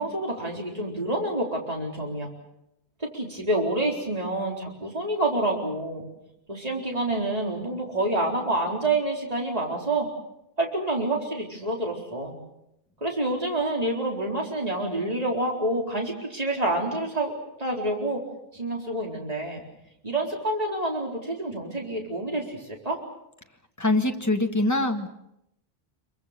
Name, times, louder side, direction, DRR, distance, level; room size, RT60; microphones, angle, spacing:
voice 1, 0.0-2.3 3.0-6.0 6.5-10.1 10.6-12.4 13.0-18.2 18.5-19.6 20.0-23.0, right 2 dB, 35° right, -1 dB, 4.3 m, -28 dB
voice 2, 23.8-25.1, left 2 dB, 15° left, 3 dB, 1.9 m, -23 dB
27.0 x 24.0 x 6.8 m, 0.83 s
omnidirectional pair, 1.1 m